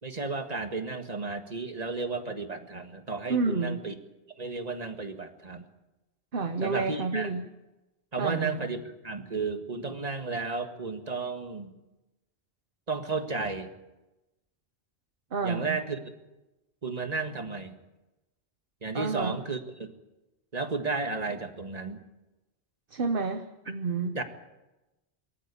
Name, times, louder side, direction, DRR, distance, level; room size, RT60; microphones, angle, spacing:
voice 1, 0.0-3.9 4.4-5.7 6.6-7.3 8.1-11.7 12.9-13.7 15.4-16.0 16.8-17.7 18.8-19.9 20.5-22.0 24.1-24.2, right 4 dB, 35° right, 6 dB, 1.8 m, -33 dB
voice 2, 3.3-3.8 6.3-7.5 8.2-8.6 15.3-15.8 18.9-19.4 22.9-24.2, right 4 dB, 55° right, 7 dB, 1.2 m, -29 dB
24.5 x 13.5 x 8.5 m, 1.0 s
omnidirectional pair, 1.1 m